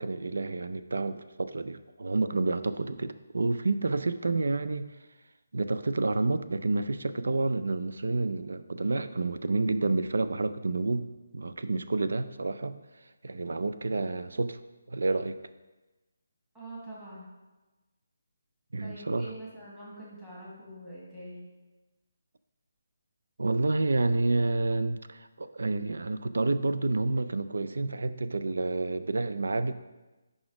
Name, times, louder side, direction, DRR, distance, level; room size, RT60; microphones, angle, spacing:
voice 1, 0.0-4.9 5.5-12.8 13.2-14.6 14.9-15.4 18.7-19.3 23.4-29.7, right 3 dB, 80° right, 12 dB, 0.4 m, -29 dB
voice 2, 16.5-17.3 18.8-21.5, right 1 dB, 10° right, -8 dB, 1.3 m, -44 dB
6.1 x 5.0 x 4.8 m, 1.1 s
hypercardioid pair, 180°, 0 cm